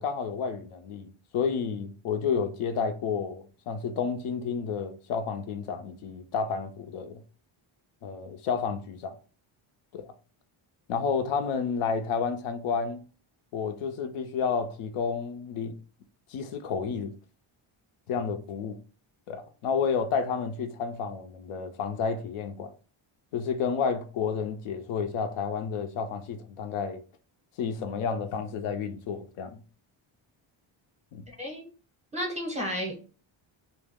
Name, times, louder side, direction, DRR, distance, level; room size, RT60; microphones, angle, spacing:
voice 1, 0.0-7.2 8.0-9.2 9.9-10.1 10.9-13.0 13.5-15.8 16.3-17.1 18.1-18.8 19.3-22.7 23.3-27.0 27.6-29.6 31.1-31.2, left 6 dB, 80° left, 0.6 m, -31 dB
voice 2, 31.3-31.7 32.1-33.1, equal, 15° right, 0.7 m, -33 dB
2.2 x 2.1 x 3.3 m
cardioid pair, 110°, 50 cm